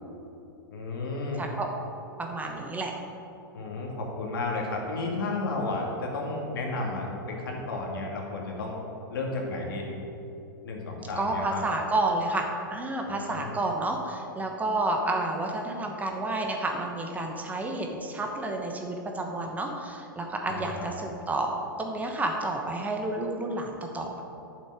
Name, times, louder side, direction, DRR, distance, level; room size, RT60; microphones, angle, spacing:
voice 1, 0.7-1.4 3.5-8.8 9.1-10.0 10.6-11.6 13.2-13.5 20.5-20.9, left 2 dB, 75° left, -1 dB, 2.2 m, -32 dB
voice 2, 2.2-2.9 11.2-24.2, right 2 dB, 15° right, 2 dB, 1.0 m, -30 dB
9.1 x 7.0 x 4.9 m, 2.8 s
hypercardioid pair, 110°, 12 cm